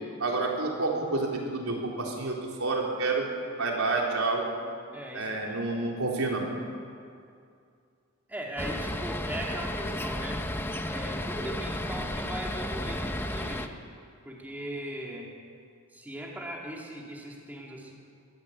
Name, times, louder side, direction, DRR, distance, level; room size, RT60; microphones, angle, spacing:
voice 1, 0.2-3.3 3.6-4.5 5.1-6.5, right 3 dB, 85° right, -1 dB, 4.1 m, -29 dB
voice 2, 4.9-5.3 8.3-10.4 10.9-13.7 14.2-15.3 15.9-17.9, right 1 dB, 10° right, -2 dB, 2.9 m, -38 dB
sound 1, 8.6-13.7, left 1 dB, 10° left, 0.9 m, -33 dB
22.0 x 15.0 x 8.3 m, 2.3 s
head